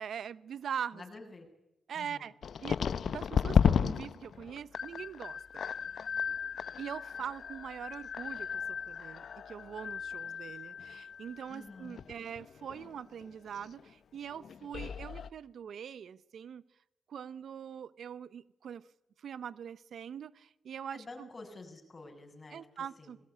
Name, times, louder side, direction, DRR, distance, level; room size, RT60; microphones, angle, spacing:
voice 1, 0.0-1.0 1.9-2.3 2.6-2.8 3.0-5.6 6.8-16.6 17.1-18.9 19.2-21.3 22.5-23.2, right 8 dB, 70° right, 18 dB, 0.8 m, -42 dB
voice 2, 0.9-1.5 1.9-2.3 11.5-12.0 20.9-23.2, left 3 dB, 35° left, 3 dB, 7.9 m, -49 dB
sound 1, 2.4-13.3 13.6-13.9 14.3-15.3, left 7 dB, 65° left, 0.8 m, -34 dB
21.5 x 18.0 x 9.8 m, 0.88 s
cardioid pair, 70°, 0 cm